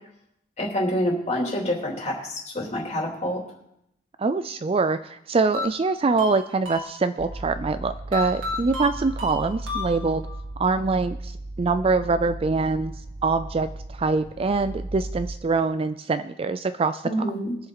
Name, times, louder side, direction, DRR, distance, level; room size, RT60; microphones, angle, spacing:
voice 1, 0.6-3.4 17.0-17.6, equal, 35° left, -2 dB, 3.0 m, -27 dB
voice 2, 4.2-10.2 10.6-12.9 13.2-17.0, right 4 dB, 30° right, 11 dB, 0.4 m, -24 dB
sound 1, 5.5-7.4 8.1-10.4, left 3 dB, 90° right, 2.6 m, -33 dB
sound 2, 7.2-15.4, right 1 dB, 55° right, 1.3 m, -36 dB
21.5 x 7.2 x 4.0 m, 0.78 s
head